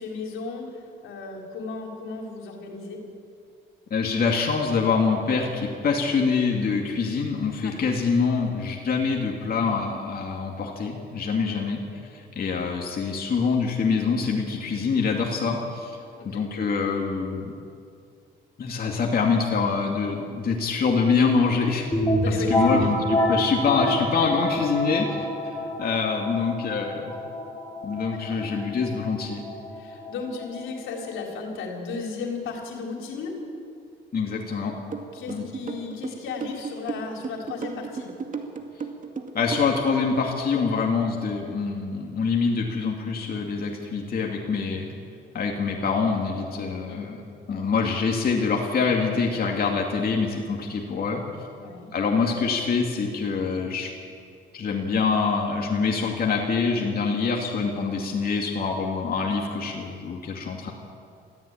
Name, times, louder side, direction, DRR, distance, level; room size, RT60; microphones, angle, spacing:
voice 1, 0.0-3.0 7.6-7.7 11.4-11.7 16.2-16.4 22.1-22.9 28.1-28.4 29.7-33.4 35.1-38.1 46.9-47.1 51.5-51.9, left 4 dB, 85° left, 1 dB, 3.8 m, -35 dB
voice 2, 3.9-11.8 12.1-16.0 16.2-17.6 18.6-21.9 22.5-27.1 27.8-29.4 34.1-34.8 35.3-35.5 39.3-44.9 45.3-47.2 47.5-51.2 51.9-53.9 54.5-60.7, left 5 dB, 50° left, 0 dB, 2.6 m, -25 dB
sound 1, 21.9-31.5, left 1 dB, 15° left, 4.3 m, -28 dB
sound 2, 34.9-40.2, right 5 dB, 40° right, 2.3 m, -34 dB
21.5 x 15.0 x 8.8 m, 2.4 s
cardioid pair, 90°, 20 cm